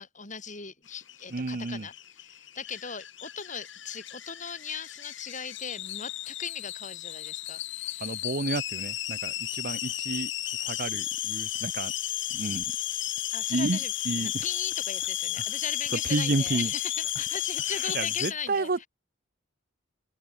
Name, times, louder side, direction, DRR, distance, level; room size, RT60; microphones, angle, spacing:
voice 1, 0.0-8.2 13.3-13.9 14.2-18.9, left 6 dB, 35° left, 6.9 m, -39 dB
sound 1, 1.0-18.3, left 13 dB, 60° left, 3.0 m, -33 dB
voice 2, 1.3-1.9 8.0-10.3 10.7-11.9 12.3-12.6 13.5-13.8 14.1-14.4 16.1-16.7 17.9-18.8, right 3 dB, 45° right, 0.7 m, -30 dB
head